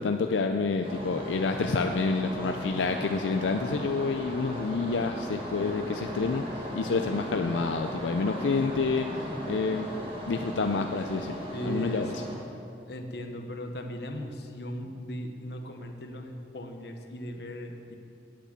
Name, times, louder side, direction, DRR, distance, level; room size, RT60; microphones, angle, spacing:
voice 1, 0.0-6.4 6.8-9.9 10.3-11.4 11.6-12.1, left 4 dB, 85° left, 5 dB, 0.5 m, -28 dB
sound 1, 0.8-12.4, equal, 30° right, 1.8 m, -37 dB
sound 2, 1.1-11.3, left 1 dB, 15° left, 0.9 m, -47 dB
voice 2, 11.5-12.4 12.9-17.9, equal, 65° left, 5 dB, 1.0 m, -38 dB
8.7 x 8.4 x 8.2 m, 2.7 s
head